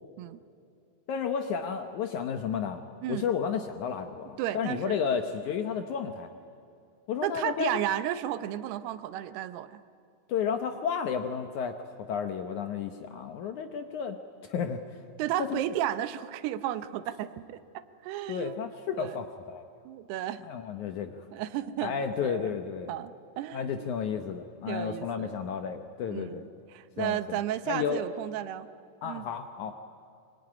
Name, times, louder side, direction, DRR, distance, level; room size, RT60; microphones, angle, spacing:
voice 1, 1.1-2.8 3.1-6.3 7.1-7.8 10.3-11.8 12.1-14.2 14.4-14.8 15.4-15.6 18.3-19.6 20.5-21.2 21.8-22.9 23.5-26.5 27.0-27.4 27.7-28.0 29.0-29.7, left 7 dB, 70° left, 7 dB, 1.9 m, -32 dB
voice 2, 4.4-5.0 7.2-9.8 15.2-18.6 19.0-19.2 19.9-20.4 21.3-22.6 22.9-23.9 24.7-25.5 26.1-28.7 29.0-29.3, right 12 dB, 90° right, 13 dB, 2.9 m, -33 dB
24.0 x 23.0 x 9.7 m, 2.4 s
omnidirectional pair, 4.6 m